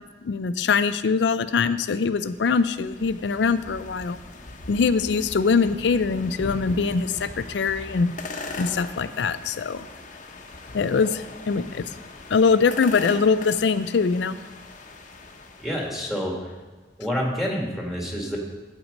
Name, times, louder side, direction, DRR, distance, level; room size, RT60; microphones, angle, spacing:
voice 1, 0.2-4.2 4.7-8.1 8.6-9.9 10.7-11.8 12.3-14.4, left 5 dB, 70° left, 13 dB, 0.4 m, -23 dB
sound 1, 2.0-16.1, left 2 dB, 45° left, 1.0 m, -40 dB
voice 2, 15.6-16.5 17.0-18.4, equal, ahead, -1 dB, 1.7 m, -28 dB
8.9 x 8.5 x 5.2 m, 1.3 s
head